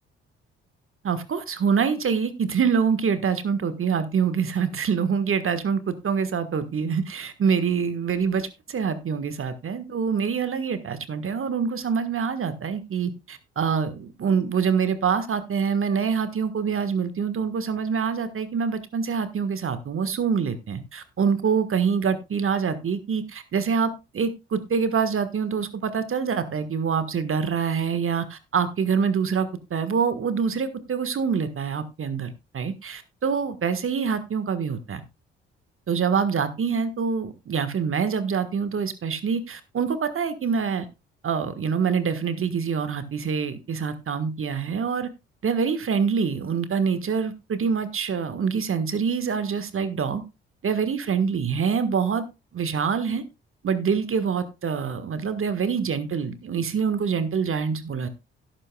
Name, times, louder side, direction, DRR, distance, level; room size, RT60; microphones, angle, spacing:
voice 1, 1.0-35.0 35.9-40.9 41.2-45.1 45.4-50.2 50.6-52.2 52.5-53.2 53.6-58.1, right 6 dB, 45° right, 11 dB, 1.5 m, -25 dB
17.0 x 8.8 x 2.3 m, 0.26 s
hypercardioid pair, 45°, 30 cm